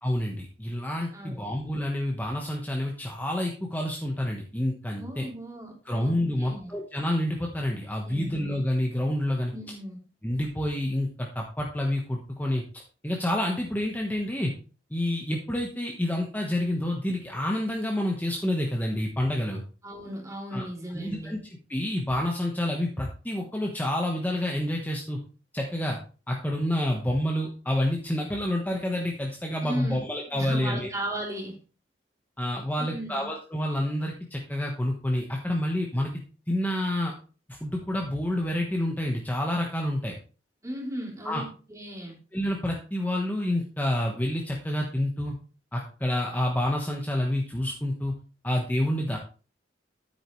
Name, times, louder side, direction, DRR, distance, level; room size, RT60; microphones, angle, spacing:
voice 1, 0.0-5.3 5.8-9.5 10.2-12.6 13.0-14.5 14.9-19.6 20.5-20.6 20.9-21.4 21.7-25.2 25.5-26.0 26.3-30.9 32.4-36.1 36.5-37.1 37.5-40.1 41.2-41.4 42.3-45.3 45.7-48.1 48.4-49.2, left 1 dB, 10° left, 0 dB, 1.2 m, -28 dB
voice 2, 1.1-1.4 5.0-6.7 8.0-8.4 9.5-10.0 19.8-21.3 29.6-30.0 30.3-31.6 32.8-33.3 40.6-42.2, right 1 dB, 20° right, -1 dB, 3.1 m, -36 dB
10.5 x 8.6 x 3.2 m, 0.36 s
head